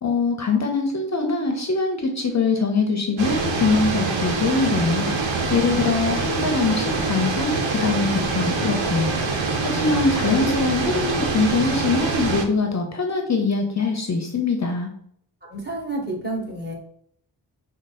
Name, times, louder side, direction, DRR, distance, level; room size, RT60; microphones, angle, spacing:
voice 1, 0.0-5.1 5.5-9.1 9.6-14.9, left 4 dB, 40° left, 3 dB, 0.6 m, -23 dB
sound 1, 3.2-12.4, right 3 dB, 90° right, 0.8 m, -24 dB
voice 2, 15.4-16.7, right 1 dB, 20° right, -2 dB, 1.5 m, -31 dB
4.7 x 2.0 x 4.0 m, 0.66 s
cardioid pair, 75°, 45 cm